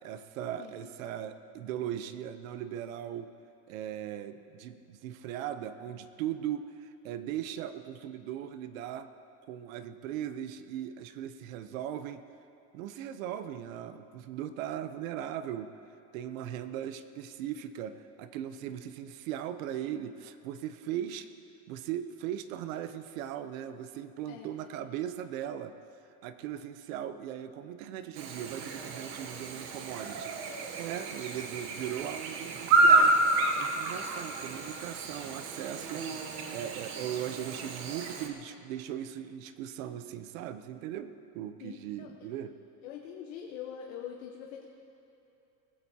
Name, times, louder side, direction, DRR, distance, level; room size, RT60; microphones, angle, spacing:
voice 1, 0.0-3.3 3.7-9.1 9.4-12.2 12.7-15.7 16.1-21.3 21.7-25.7 26.2-30.3 30.8-36.0 36.5-42.5, right 10 dB, 75° right, 10 dB, 0.9 m, -38 dB
Chirp tweet / Buzz, 28.1-38.3, right 2 dB, 40° right, 1.0 m, -29 dB
voice 2, 41.6-42.1 42.8-44.7, left 9 dB, 65° left, 1 dB, 1.2 m, -43 dB
20.0 x 15.0 x 2.9 m, 2.9 s
cardioid pair, 180°, 40 cm